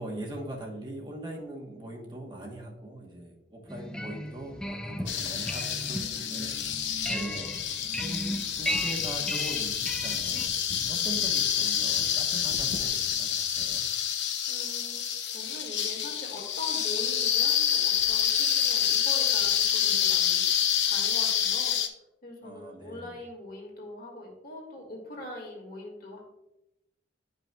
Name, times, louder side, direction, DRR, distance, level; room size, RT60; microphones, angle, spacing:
voice 1, 0.0-7.7 8.0-13.8 22.4-23.1, right 1 dB, 25° right, -1 dB, 1.0 m, -41 dB
sound 1, 3.7-10.5, equal, 5° left, 0.4 m, -36 dB
sound 2, 5.1-21.9, left 9 dB, 80° left, 0.7 m, -28 dB
voice 2, 14.5-21.8 22.2-26.2, left 1 dB, 55° left, 0 dB, 1.9 m, -42 dB
10.0 x 5.3 x 2.2 m, 0.92 s
head